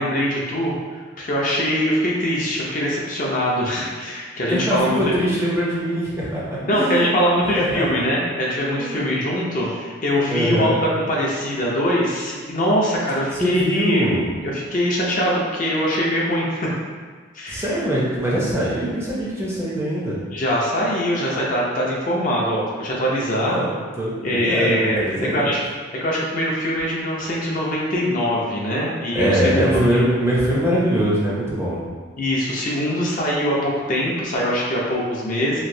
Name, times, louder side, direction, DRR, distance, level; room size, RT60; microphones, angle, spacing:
voice 1, 0.0-5.0 6.6-14.2 14.4-16.7 17.3-17.6 20.3-23.6 24.2-25.6 26.0-30.0 32.2-35.6, equal, 40° left, -4 dB, 0.5 m, -22 dB
voice 2, 4.5-7.2 7.5-8.0 8.8-9.1 10.3-10.8 13.3-14.2 17.5-20.2 23.4-23.7 24.0-25.5 29.1-31.8, equal, 15° right, -7 dB, 0.5 m, -22 dB
3.0 x 2.6 x 2.6 m, 1.5 s
head